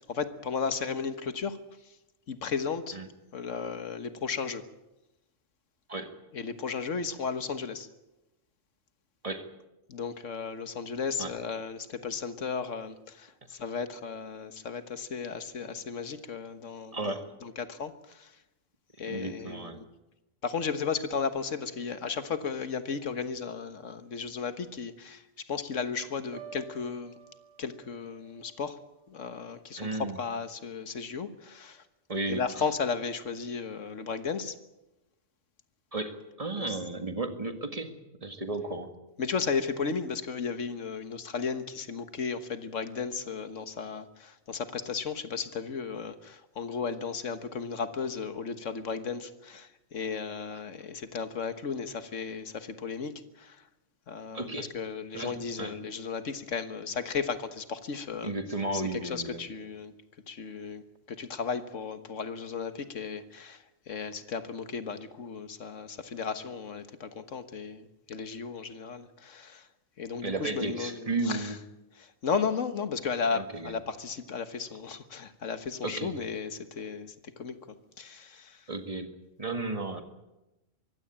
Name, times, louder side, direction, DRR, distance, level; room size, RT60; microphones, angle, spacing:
voice 1, 0.1-1.6 2.3-3.0 3.3-4.6 6.3-7.9 9.9-17.1 17.4-18.3 19.0-19.8 20.4-27.2 27.6-28.8 29.1-31.8 32.3-34.5 36.6-36.8 39.2-53.6 54.1-58.3 58.7-59.9 60.3-69.7 70.0-71.6 71.9-77.6 78.0-78.6, left 5 dB, 70° left, 10 dB, 1.7 m, -35 dB
voice 2, 16.9-17.3 19.0-19.8 29.8-30.2 32.1-32.4 35.9-37.9 38.2-38.9 54.3-54.7 55.1-55.7 58.2-59.4 70.2-71.6 73.3-73.7 75.8-76.1 78.7-79.1 79.4-80.0, right 2 dB, 25° right, 7 dB, 1.9 m, -34 dB
Piano, 26.3-30.3 30.7-31.0, right 7 dB, 75° right, 4.6 m, -52 dB
23.0 x 16.0 x 8.7 m, 0.99 s
omnidirectional pair, 1.3 m